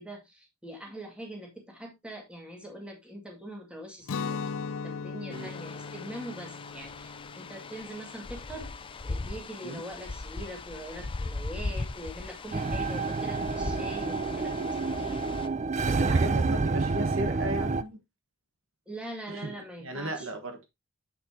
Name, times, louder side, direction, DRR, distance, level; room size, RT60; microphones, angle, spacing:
voice 1, 0.0-4.6 4.8-8.7 9.0-15.3 18.9-20.3, right 1 dB, 5° right, 2.0 m, -43 dB
Guitar, 4.0-9.9, left 5 dB, 80° left, 0.5 m, -39 dB
sound 1, 5.3-15.5, left 3 dB, 25° left, 0.4 m, -39 dB
sound 2, 12.5-17.8, right 3 dB, 35° right, 0.5 m, -28 dB
voice 2, 15.8-18.0 19.3-19.5 19.8-20.6, right 1 dB, 65° right, 1.3 m, -35 dB
7.8 x 6.7 x 2.7 m
head